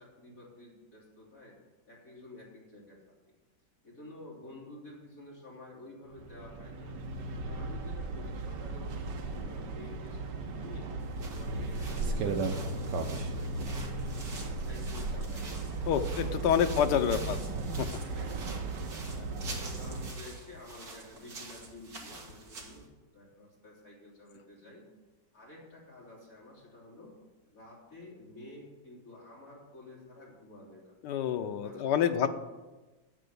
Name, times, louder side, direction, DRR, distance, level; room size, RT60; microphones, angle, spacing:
voice 1, 0.0-1.6 1.9-3.4 3.8-6.9 7.4-10.9 11.3-14.2 14.6-17.4 18.1-18.7 19.1-24.8 25.3-27.1 27.5-30.9 31.6-32.2, left 2 dB, 55° left, -4 dB, 3.9 m, -51 dB
sound 1, 6.1-20.1, right 3 dB, 85° right, 1.6 m, -36 dB
sound 2, 11.0-22.9, right 3 dB, 60° right, 2.3 m, -47 dB
voice 2, 15.9-17.4 17.8-17.9 31.0-32.3, left 9 dB, 90° left, 8 dB, 1.4 m, -27 dB
9.2 x 7.7 x 8.4 m, 1.2 s
omnidirectional pair, 1.8 m